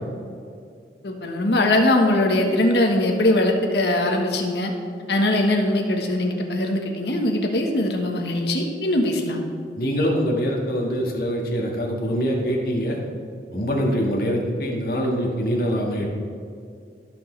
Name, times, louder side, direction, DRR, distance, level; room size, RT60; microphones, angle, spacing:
voice 1, 1.0-4.7 5.1-9.5, left 1 dB, 70° left, 2 dB, 1.3 m, -21 dB
voice 2, 9.8-13.0 13.5-16.1, equal, 55° left, -1 dB, 1.8 m, -24 dB
16.5 x 6.2 x 3.3 m, 2.3 s
head